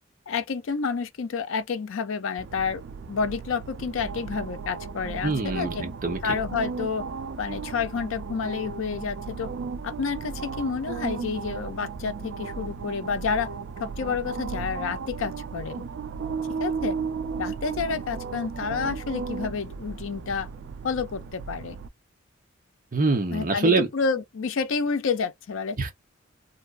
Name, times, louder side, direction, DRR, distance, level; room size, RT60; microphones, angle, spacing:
voice 1, 0.3-2.8 3.1-5.8 6.2-7.1 7.4-9.5 9.8-13.5 13.8-15.8 16.6-17.0 17.4-20.5 20.8-21.8 23.3-25.8, left 5 dB, 65° left, 0.4 m, -29 dB
sound 1, 2.4-21.9, right 5 dB, 60° right, 0.4 m, -35 dB
voice 2, 5.2-6.3 22.9-23.9 25.8-25.9, right 3 dB, 40° right, 0.9 m, -24 dB
2.6 x 2.3 x 2.4 m
head